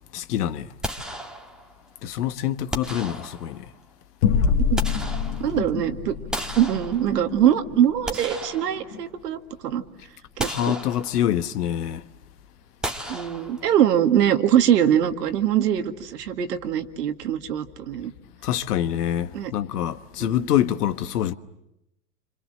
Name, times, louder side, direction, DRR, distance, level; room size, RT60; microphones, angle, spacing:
voice 1, 0.1-0.7 2.0-3.7 10.4-12.0 18.4-21.3, left 11 dB, 70° left, 1.3 m, -25 dB
sound 1, 0.8-1.9 2.7-3.8 4.4-5.8 6.3-7.4 7.8-9.3 9.7-9.8 10.4-11.5 12.8-13.9, right 1 dB, ahead, 1.9 m, -34 dB
sound 2, 4.2-9.0, left 6 dB, 55° left, 2.3 m, -27 dB
voice 2, 5.4-6.1 6.6-9.8 10.4-10.5 13.1-18.1 19.3-19.5 20.2-20.5, right 10 dB, 75° right, 2.0 m, -22 dB
27.5 x 26.5 x 7.8 m
hypercardioid pair, 110°, 48 cm